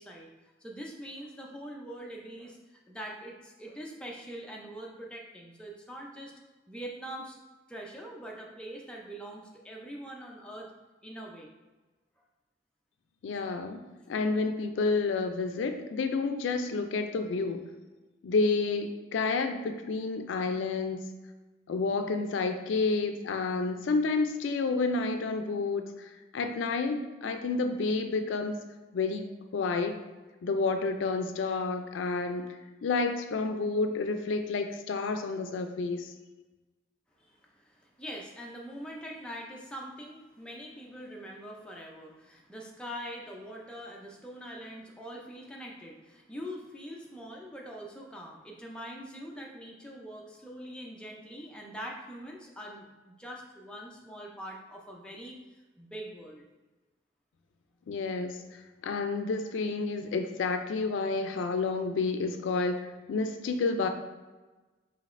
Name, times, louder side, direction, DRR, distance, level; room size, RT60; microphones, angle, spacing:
voice 1, 0.0-6.3 6.7-7.4 7.7-10.7 11.0-11.5 37.2-56.5, equal, 5° left, -2 dB, 0.4 m, -43 dB
voice 2, 13.2-13.8 14.1-17.6 18.2-21.0 21.7-28.6 28.9-30.0 30.4-32.5 32.8-36.1 57.9-63.9, left 3 dB, 80° left, 7 dB, 0.3 m, -30 dB
5.1 x 2.8 x 2.5 m, 1.2 s
head